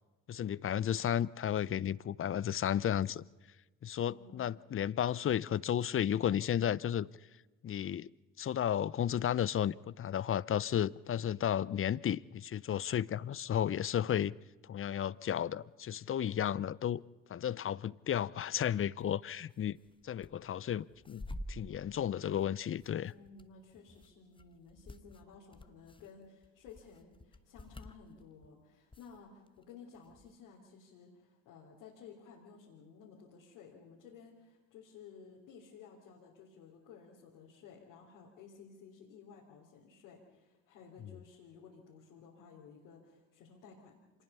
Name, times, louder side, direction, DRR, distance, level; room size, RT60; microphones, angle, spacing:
voice 1, 0.3-3.2 3.8-7.1 7.6-8.1 8.4-14.4 14.6-17.0 17.3-19.8 20.0-23.1, left 10 dB, 35° left, 0.6 m, -33 dB
voice 2, 4.1-4.5 23.1-44.2, left 6 dB, 80° left, 3.5 m, -55 dB
sound 1, 19.0-19.2 19.5-20.3 20.7-28.5 28.9-29.6 29.9-30.3, left 1 dB, 15° left, 1.1 m, -49 dB
26.5 x 19.5 x 5.6 m
hypercardioid pair, 60°, 40 cm